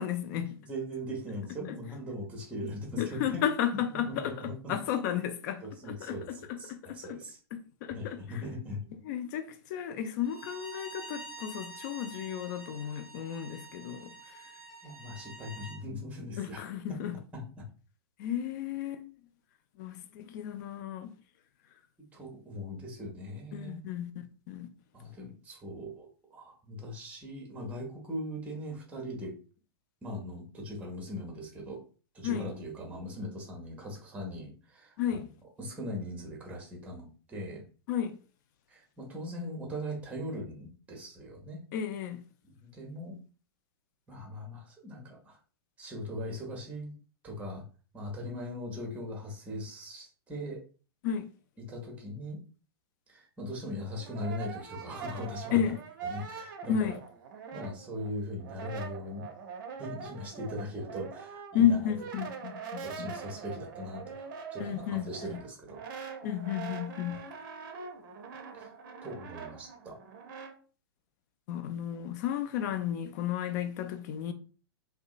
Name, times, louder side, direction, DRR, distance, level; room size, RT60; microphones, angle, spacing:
voice 1, 0.0-0.6 1.7-1.8 3.0-7.2 7.5-8.2 9.0-14.1 16.4-17.2 18.2-19.1 19.8-21.1 23.5-24.7 32.2-32.5 35.0-35.3 37.9-38.2 41.7-42.2 51.0-51.3 55.5-55.8 56.7-57.0 61.5-63.1 64.6-65.4 66.2-67.2 71.5-74.3, left 9 dB, 45° left, 0.4 m, -33 dB
voice 2, 0.6-3.2 3.7-4.8 5.6-7.4 7.9-8.8 14.8-16.6 17.3-17.7 22.1-24.0 24.9-29.3 30.0-31.8 32.1-35.2 35.6-37.6 38.7-41.6 42.4-43.2 44.1-45.4 45.8-46.9 47.2-47.6 47.9-50.6 51.6-52.4 53.1-55.6 56.0-57.0 57.5-59.3 59.8-61.8 62.2-62.3 62.8-66.2 67.1-67.2 68.5-68.7 69.0-70.0, left 1 dB, 10° right, 0.7 m, -40 dB
Bowed string instrument, 10.2-15.8, right 3 dB, 80° left, 0.8 m, -47 dB
Brass instrument, 53.7-58.1 58.4-70.5, right 6 dB, 55° right, 0.5 m, -43 dB
2.7 x 2.2 x 2.4 m
figure-of-eight pair, 105°, 13 cm